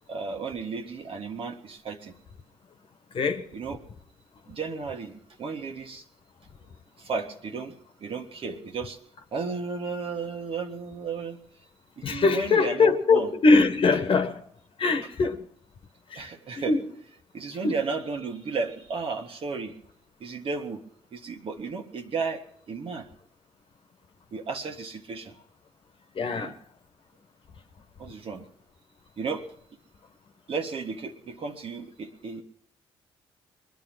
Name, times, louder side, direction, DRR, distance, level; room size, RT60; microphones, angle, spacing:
voice 1, 0.1-2.1 3.5-3.8 4.5-6.0 7.0-9.0 9.3-11.4 12.0-13.3 16.2-16.8 17.3-19.7 20.2-20.8 21.1-23.1 24.3-25.4 26.4-26.5 28.0-28.4 29.2-29.5 30.5-32.4, right 4 dB, 55° right, 1.7 m, -34 dB
voice 2, 3.1-3.5 12.0-14.4 14.8-15.5 16.1-16.3 16.7-16.9 17.6-17.8 26.1-26.6, left 4 dB, 50° left, 1.3 m, -22 dB
21.0 x 11.0 x 6.2 m
supercardioid pair, 55°, 11 cm